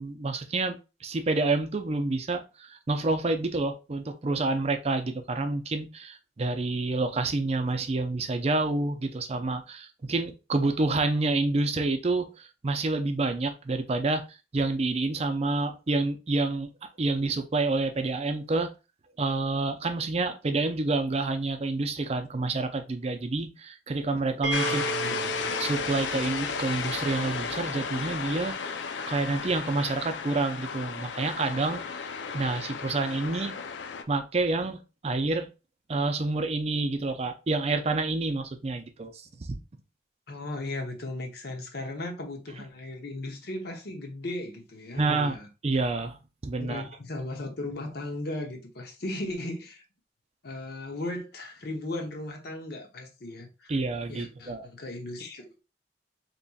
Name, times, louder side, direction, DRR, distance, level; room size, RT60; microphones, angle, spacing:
voice 1, 0.0-16.7 17.0-18.7 19.2-24.8 25.6-28.6 29.1-32.0 32.3-33.6 34.1-35.5 35.9-39.6 45.0-46.2 46.4-46.8 53.7-54.7, right 3 dB, 35° right, 0.5 m, -28 dB
sound 1, 24.4-28.2, right 5 dB, 80° right, 0.7 m, -36 dB
sound 2, 24.5-34.0, left 6 dB, 80° left, 0.4 m, -34 dB
voice 2, 24.7-25.2 25.5-25.6 40.3-45.5 46.6-49.8 50.4-53.7 54.1-55.4, left 2 dB, 60° left, 0.8 m, -36 dB
4.0 x 3.0 x 2.3 m
head